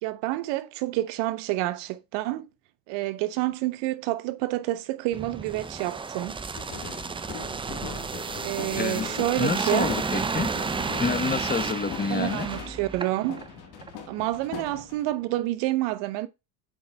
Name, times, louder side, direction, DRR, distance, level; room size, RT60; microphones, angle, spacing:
voice 1, 0.0-2.5 2.9-6.4 8.4-9.9 12.1-13.4 14.1-16.3, right 16 dB, 80° right, 0.9 m, -28 dB
sound 1, 5.1-13.5 13.8-14.0, right 4 dB, 15° right, 0.4 m, -32 dB
sound 2, 6.6-13.0 13.3-15.2, left 7 dB, 60° left, 1.7 m, -41 dB
voice 2, 8.8-9.1 9.4-10.5 11.0-12.5, left 5 dB, 20° left, 1.0 m, -28 dB
8.5 x 4.0 x 3.4 m
supercardioid pair, 90°, 44 cm